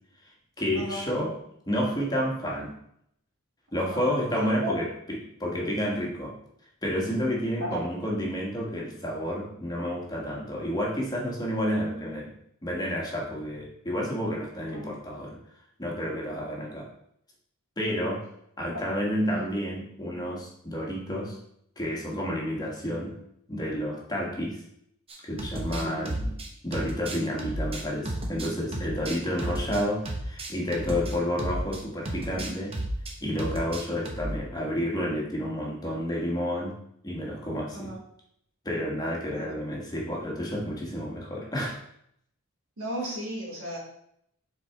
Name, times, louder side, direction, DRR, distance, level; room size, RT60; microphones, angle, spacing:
voice 1, 0.2-1.3 1.7-2.8 3.7-6.4 6.8-12.3 12.6-15.4 15.8-16.9 17.8-18.3 18.6-21.4 21.8-23.2 23.5-24.6 25.2-26.3 26.6-32.8 33.2-36.7 37.0-37.9 38.6-41.8, equal, 20° left, -2 dB, 1.3 m, -30 dB
voice 2, 0.7-1.1 3.8-4.1 4.3-4.7 7.6-7.8 11.9-12.2 14.7-15.2 19.3-19.5 25.7-26.0 37.7-38.0 39.3-39.6 42.8-43.8, equal, 85° right, -4 dB, 2.4 m, -35 dB
sound 1, 25.1-31.8 32.1-33.1 33.4-34.4, right 1 dB, 25° right, 0.9 m, -33 dB
7.5 x 4.3 x 3.4 m, 0.71 s
head